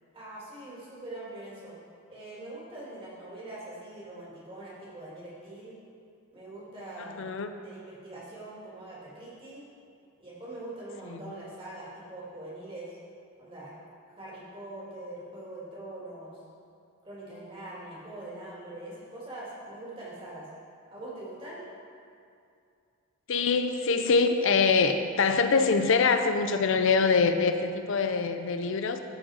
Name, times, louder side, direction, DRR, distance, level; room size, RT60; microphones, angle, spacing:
voice 1, 0.1-1.7 2.1-5.8 6.3-7.2 7.5-9.7 10.2-13.0 13.4-13.7 14.1-16.4 17.0-20.5 20.9-21.6, right 1 dB, 25° right, -7 dB, 2.2 m, -43 dB
voice 2, 7.2-7.5 11.1-11.2 23.3-29.0, left 4 dB, 60° left, 8 dB, 0.5 m, -24 dB
13.5 x 4.7 x 4.3 m, 2.4 s
head